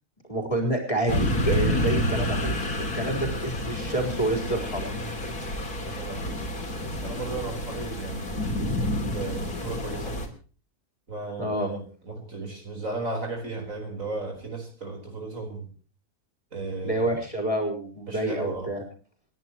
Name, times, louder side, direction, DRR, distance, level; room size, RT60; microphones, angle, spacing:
voice 1, 0.3-2.5 2.9-4.9 11.4-11.7 16.8-18.8, right 1 dB, 20° left, 3 dB, 4.3 m, -28 dB
sound 1, 1.1-10.3, left 1 dB, 90° left, 3.7 m, -29 dB
voice 2, 5.9-6.3 7.0-8.3 9.1-10.2 11.1-15.7 16.5-17.2 18.1-18.7, right 3 dB, 60° right, 3 dB, 4.9 m, -35 dB
29.5 x 10.5 x 3.0 m, 0.39 s
omnidirectional pair, 1.6 m